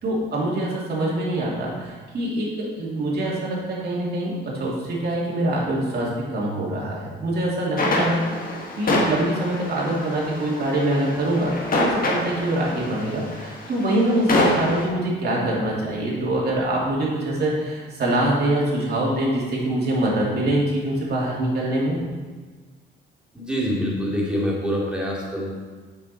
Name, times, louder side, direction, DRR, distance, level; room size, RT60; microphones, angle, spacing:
voice 1, 0.0-8.2 8.8-22.0, right 1 dB, 55° right, -5 dB, 2.6 m, -24 dB
sound 1, 7.8-14.9, left 2 dB, 45° left, 1.6 m, -26 dB
voice 2, 23.3-25.5, equal, 5° right, -5 dB, 2.4 m, -25 dB
7.4 x 6.2 x 4.2 m, 1.4 s
cardioid pair, 90°, 20 cm